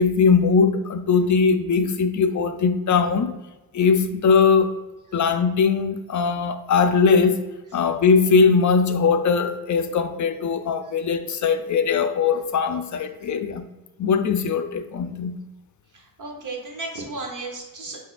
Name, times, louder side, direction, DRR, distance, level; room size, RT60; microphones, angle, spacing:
voice 1, 0.0-3.3 3.7-4.7 5.1-7.4 7.7-13.7 14.0-15.4, left 5 dB, 55° left, 0.4 m, -20 dB
voice 2, 15.9-18.0, right 2 dB, 60° right, 1.0 m, -34 dB
5.9 x 2.8 x 2.4 m
wide cardioid pair, 100°, 35 cm